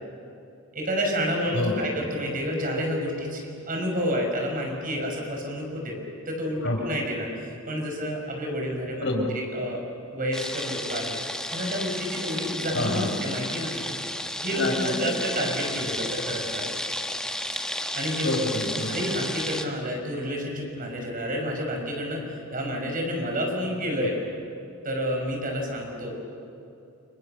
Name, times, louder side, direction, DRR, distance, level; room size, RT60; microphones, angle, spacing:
voice 1, 0.7-6.0 6.3-9.1 9.3-9.8 10.1-11.2 11.5-13.8 14.4-16.7 17.9-18.3 18.9-22.2 22.5-24.1 24.8-26.1, equal, 40° right, 1 dB, 6.3 m, -29 dB
voice 2, 1.5-1.9 6.6-6.7 9.0-9.3 12.7-13.1 14.6-15.1 18.2-19.0, left 1 dB, 65° left, 1 dB, 5.8 m, -27 dB
sound 1, 10.3-19.7, left 1 dB, 5° left, 1.6 m, -32 dB
30.0 x 28.5 x 6.8 m, 2.6 s
head